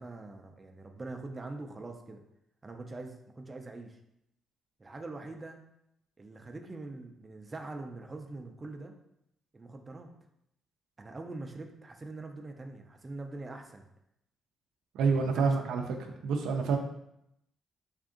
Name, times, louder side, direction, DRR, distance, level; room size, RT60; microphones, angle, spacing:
voice 1, 0.0-2.2 2.6-4.0 4.8-5.6 6.2-8.9 9.5-10.1 11.0-13.8 15.1-15.7, right 2 dB, 25° right, 4 dB, 0.5 m, -43 dB
voice 2, 14.9-15.8 16.2-16.8, right 5 dB, 85° right, 3 dB, 0.4 m, -27 dB
3.5 x 2.5 x 3.7 m, 0.80 s
cardioid pair, 90°, 0 cm